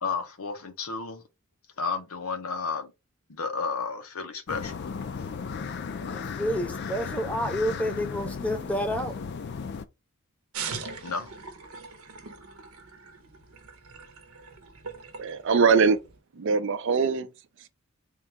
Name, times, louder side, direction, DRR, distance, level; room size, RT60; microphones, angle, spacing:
voice 1, 0.0-1.2 1.8-2.9 3.3-4.8 11.0-11.3, left 4 dB, 85° left, 0.7 m, -32 dB
sound 1, 4.5-9.8, left 5 dB, 50° left, 0.4 m, -35 dB
voice 2, 6.1-9.2, equal, 5° left, 0.7 m, -29 dB
sound 2, 10.5-16.2, right 5 dB, 85° right, 0.8 m, -41 dB
voice 3, 15.2-16.0 16.3-17.3, right 5 dB, 60° right, 0.4 m, -22 dB
3.7 x 2.3 x 4.3 m
head